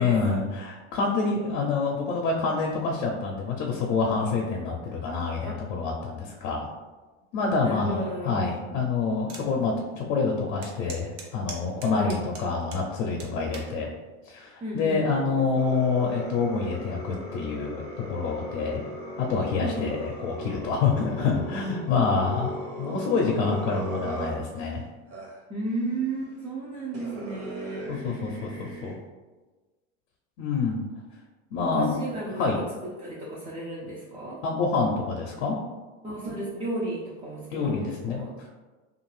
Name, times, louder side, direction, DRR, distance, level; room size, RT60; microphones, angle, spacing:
voice 1, 0.0-6.7 7.3-13.9 14.3-18.8 19.2-24.8 27.9-29.0 30.4-30.8 31.5-32.0 32.4-32.6 34.4-35.6 37.5-38.5, left 4 dB, 70° left, -1 dB, 0.6 m, -27 dB
voice 2, 7.6-8.3 11.9-12.1 14.6-15.2 19.6-19.8 25.5-27.9 31.6-32.5 33.0-34.4 36.0-38.3, right 2 dB, 15° right, -6 dB, 0.4 m, -33 dB
sound 1, 9.3-9.5 9.9-10.0 10.6-12.8 13.2-13.7 14.4-14.7, right 4 dB, 75° right, 0.8 m, -41 dB
sound 2, 15.6-24.7 25.1-25.4 26.3-26.4 26.9-28.9, right 1 dB, 40° right, 0.9 m, -38 dB
2.5 x 2.4 x 3.1 m, 1.2 s
supercardioid pair, 125°, 38 cm